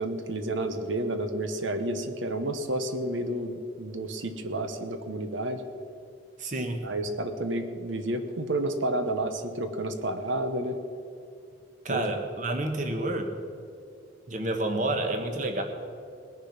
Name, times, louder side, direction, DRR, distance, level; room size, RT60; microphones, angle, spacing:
voice 1, 0.0-5.6 6.8-10.8 11.9-12.1, right 1 dB, 90° right, 8 dB, 1.1 m, -30 dB
voice 2, 6.4-6.8 11.8-13.3 14.3-15.6, right 1 dB, 40° right, 5 dB, 1.3 m, -29 dB
19.0 x 6.8 x 5.9 m, 2.4 s
head